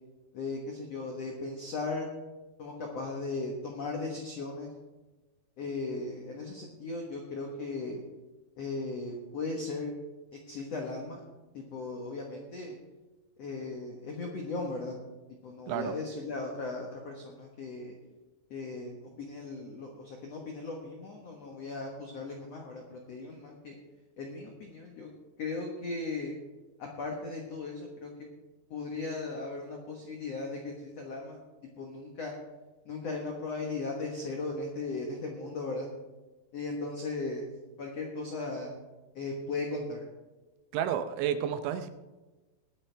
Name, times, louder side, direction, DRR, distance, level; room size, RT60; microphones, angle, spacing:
voice 1, 0.3-2.1 2.6-4.7 5.6-8.0 8.6-9.9 10.3-11.2 11.5-12.8 13.4-14.9 15.4-17.9 18.5-23.8 24.2-25.1 25.4-26.3 26.8-28.1 28.7-31.4 31.8-32.3 32.8-35.9 36.5-37.4 37.8-38.8 39.1-40.0, left 3 dB, 85° left, 1 dB, 1.4 m, -37 dB
voice 2, 40.7-41.9, right 9 dB, 85° right, 10 dB, 3.1 m, -31 dB
20.0 x 9.6 x 3.4 m, 1.2 s
omnidirectional pair, 5.2 m